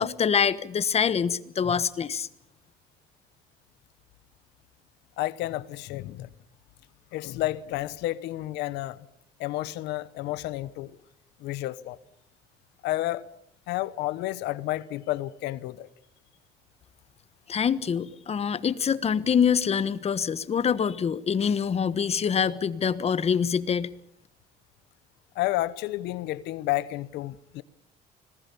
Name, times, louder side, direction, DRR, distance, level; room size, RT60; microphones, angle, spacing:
voice 1, 0.0-2.3 17.5-23.9, left 7 dB, 35° left, 1.2 m, -25 dB
voice 2, 5.2-6.3 7.1-9.0 9.4-11.0 11.4-12.0 12.8-13.2 13.7-15.9 22.4-22.5 25.3-27.6, left 16 dB, 90° left, 0.9 m, -31 dB
25.5 x 19.5 x 7.0 m
cardioid pair, 110°, 17 cm